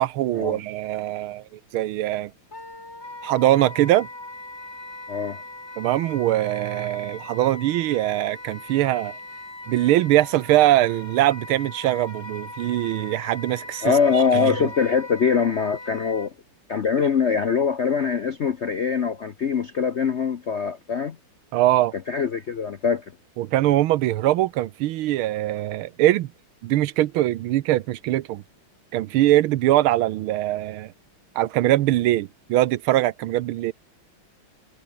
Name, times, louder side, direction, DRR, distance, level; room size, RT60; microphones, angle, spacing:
voice 1, 0.0-1.4 1.7-2.3 3.2-4.1 5.8-9.2 9.7-14.7 21.5-21.9 23.4-26.3 26.6-28.4 28.9-30.9 31.3-33.7, right 15 dB, 90° right, 1.6 m, -22 dB
Wind instrument woodwind instrument, 2.5-16.3, left 2 dB, 30° left, 5.5 m, -40 dB
voice 2, 5.1-5.4 13.8-16.3 16.7-21.2 22.1-23.0, left 6 dB, 60° left, 0.7 m, -23 dB
omnidirectional pair, 2.3 m